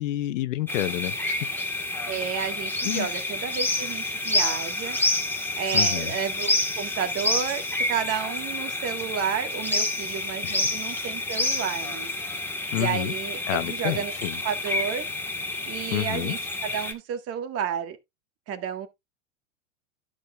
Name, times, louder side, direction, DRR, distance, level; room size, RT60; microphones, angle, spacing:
voice 1, 0.0-1.4 2.9-3.1 5.7-6.1 10.4-10.6 12.7-13.1 13.5-14.4 15.9-16.3, left 14 dB, 65° left, 1.1 m, -29 dB
sound 1, 0.7-16.9, left 2 dB, 5° left, 1.7 m, -28 dB
voice 2, 2.1-5.0 5.6-12.1 12.7-14.1 14.4-15.1 15.7-18.0 18.5-18.9, right 8 dB, 35° right, 1.7 m, -31 dB
12.5 x 6.7 x 2.5 m
hypercardioid pair, 125°, 40 cm